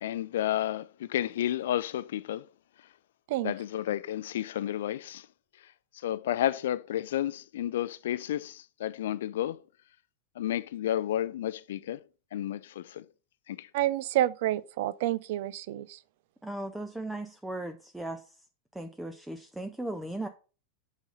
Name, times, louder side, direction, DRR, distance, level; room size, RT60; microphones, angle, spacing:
voice 1, 0.0-2.4 3.4-5.3 6.0-9.6 10.4-12.0 12.3-13.1 13.5-13.7, left 12 dB, 60° left, 0.4 m, -31 dB
voice 2, 13.7-16.0, right 14 dB, 50° right, 0.4 m, -29 dB
voice 3, 16.4-18.2 18.8-20.3, right 1 dB, 5° right, 0.5 m, -37 dB
8.0 x 4.2 x 5.3 m
figure-of-eight pair, 90°, 0 cm